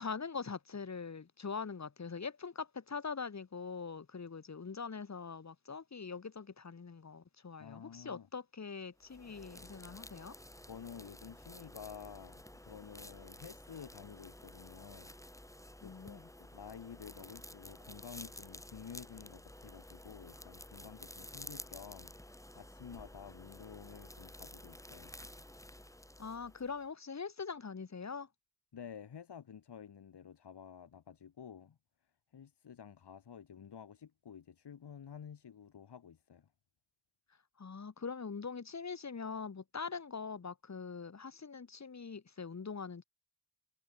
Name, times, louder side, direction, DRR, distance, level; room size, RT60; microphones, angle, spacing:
voice 1, 0.0-10.3 15.8-16.3 26.2-28.3 37.6-43.0, left 5 dB, 45° left, 2.4 m, -43 dB
voice 2, 7.6-8.3 10.7-15.1 15.8-22.1 22.6-25.2 28.7-31.8 32.3-36.5, left 7 dB, 90° left, 7.9 m, -51 dB
sound 1, 9.0-26.8, left 1 dB, 10° left, 4.8 m, -52 dB
wide cardioid pair, 100°, 39 cm